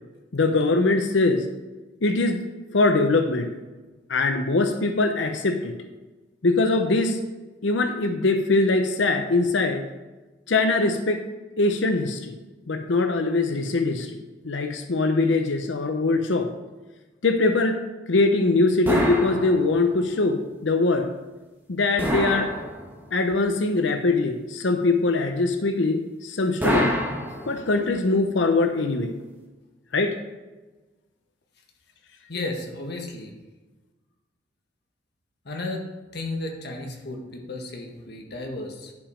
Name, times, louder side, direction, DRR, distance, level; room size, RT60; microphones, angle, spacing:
voice 1, 0.3-1.5 2.0-2.4 2.7-3.5 4.1-5.8 6.4-7.2 7.6-9.9 10.5-11.2 11.6-12.4 12.7-16.5 17.2-17.8 18.1-21.1 21.7-22.5 23.1-26.9 27.5-29.1 29.9-30.2, left 3 dB, 90° left, 7 dB, 0.7 m, -22 dB
sound 1, 18.9-20.0 22.0-23.2 26.6-27.9, equal, 10° right, 1.8 m, -26 dB
voice 2, 32.3-33.3 35.4-35.9 36.1-38.9, left 2 dB, 60° left, 2 dB, 1.5 m, -33 dB
10.5 x 5.1 x 5.0 m, 1.2 s
head